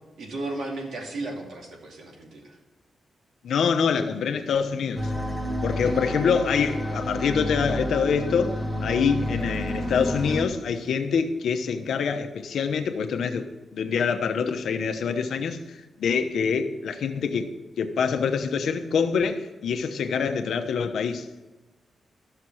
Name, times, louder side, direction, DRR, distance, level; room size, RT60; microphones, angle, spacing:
voice 1, 0.2-2.6 5.7-6.1, right 2 dB, 80° right, 0 dB, 2.7 m, -35 dB
voice 2, 3.4-5.1 5.6-13.5 13.7-17.5 17.8-21.3, left 6 dB, 75° left, 6 dB, 1.0 m, -25 dB
sound 1, 5.0-10.4, equal, 5° right, 1.3 m, -30 dB
13.0 x 6.7 x 6.2 m, 1.1 s
wide cardioid pair, 170°, 0 cm